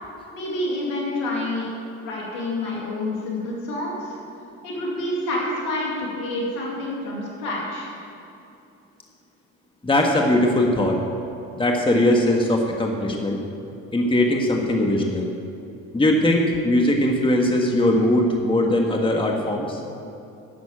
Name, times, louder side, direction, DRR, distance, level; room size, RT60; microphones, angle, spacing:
voice 1, 0.3-1.7 2.0-4.2 4.6-7.9, left 1 dB, 80° left, -3 dB, 2.5 m, -28 dB
voice 2, 9.8-11.0 11.6-13.4 13.9-15.3 15.9-19.8, left 1 dB, 15° left, 1 dB, 1.6 m, -20 dB
11.5 x 7.0 x 8.6 m, 2.7 s
supercardioid pair, 70°, 33 cm